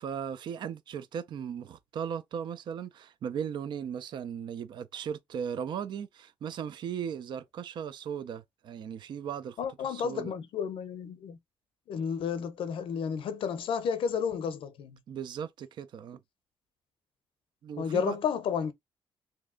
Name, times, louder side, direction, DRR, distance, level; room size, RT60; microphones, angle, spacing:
voice 1, 0.0-10.3 15.1-16.2 17.6-18.2, right 8 dB, 55° right, 0.4 m, -37 dB
voice 2, 9.6-11.4 11.9-15.0 17.8-18.7, left 7 dB, 70° left, 0.6 m, -31 dB
3.2 x 2.7 x 3.7 m
wide cardioid pair, 170°, 9 cm